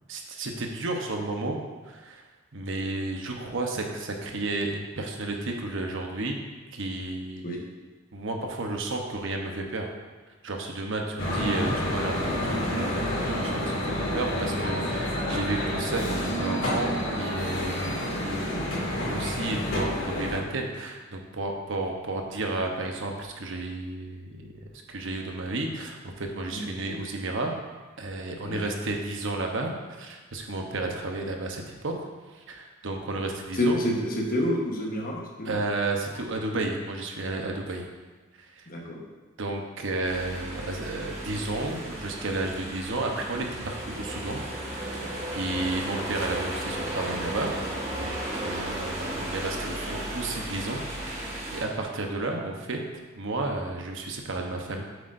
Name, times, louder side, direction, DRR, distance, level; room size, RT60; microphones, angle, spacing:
voice 1, 0.1-1.6 1.9-2.2 2.5-6.4 6.7-7.5 8.1-9.9 10.4-18.7 19.0-24.5 24.9-27.5 28.0-32.1 32.3-33.8 35.4-37.8 38.4-38.7 39.4-44.4 44.7-47.5 47.9-50.8 51.2-52.8 53.2-54.8, right 2 dB, 65° right, 2 dB, 1.0 m, -32 dB
sound 1, 11.2-20.4, equal, 80° left, 2.5 m, -29 dB
voice 2, 33.5-35.6 38.7-39.0, left 1 dB, 45° left, 0 dB, 1.2 m, -28 dB
sound 2, 40.0-51.6, right 1 dB, 35° right, 1.8 m, -34 dB
8.0 x 8.0 x 2.6 m, 1.3 s
head